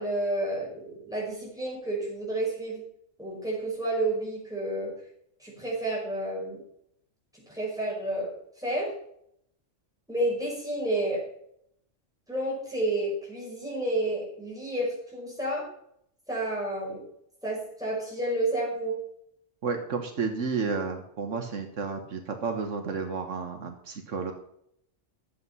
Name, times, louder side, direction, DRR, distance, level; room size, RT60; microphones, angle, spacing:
voice 1, 0.0-2.8 3.2-4.9 5.4-6.6 7.3-8.3 8.6-8.9 10.1-11.2 12.3-15.6 16.3-17.0 17.4-19.0, right 1 dB, 5° right, -5 dB, 5.5 m, -30 dB
voice 2, 19.6-24.3, right 5 dB, 80° right, 5 dB, 1.6 m, -31 dB
12.0 x 7.9 x 5.6 m, 0.71 s
omnidirectional pair, 1.3 m